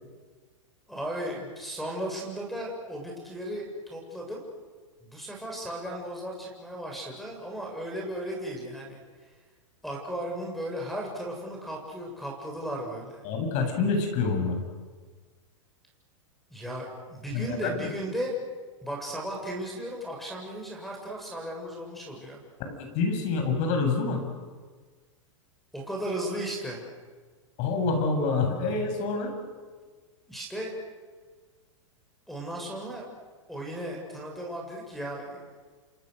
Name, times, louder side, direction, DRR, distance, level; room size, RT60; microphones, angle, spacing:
voice 1, 0.9-4.4 5.0-9.0 9.8-13.2 16.5-18.3 18.8-22.4 25.7-26.8 30.3-30.7 32.3-33.1 33.5-35.4, right 1 dB, ahead, 0 dB, 7.1 m, -35 dB
voice 2, 13.2-14.6 17.3-17.9 22.6-24.2 27.6-29.3, left 4 dB, 45° left, 4 dB, 7.7 m, -27 dB
29.0 x 26.5 x 6.7 m, 1.4 s
hypercardioid pair, 115°, 16 cm